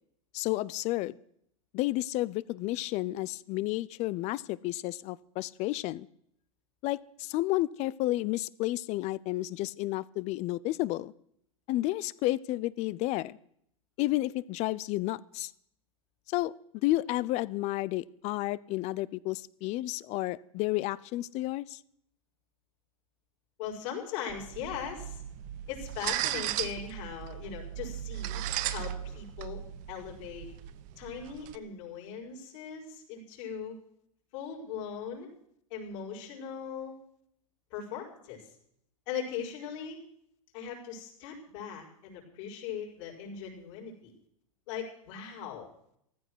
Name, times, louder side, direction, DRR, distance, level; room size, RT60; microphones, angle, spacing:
voice 1, 0.3-1.2 1.7-6.1 6.8-11.1 11.7-13.4 14.0-15.5 16.3-16.5 16.8-21.8, left 17 dB, 35° left, 21 dB, 0.5 m, -31 dB
voice 2, 23.6-25.2 25.7-29.6 29.9-30.5 31.0-33.8 34.3-35.3 35.7-36.9 37.7-38.5 39.1-40.0 40.5-44.1 44.7-45.7, left 7 dB, 55° left, -2 dB, 5.3 m, -39 dB
sound 1, 24.3-31.6, right 13 dB, 45° right, 1.0 m, -37 dB
15.0 x 13.5 x 6.2 m, 0.70 s
hypercardioid pair, 125°, 19 cm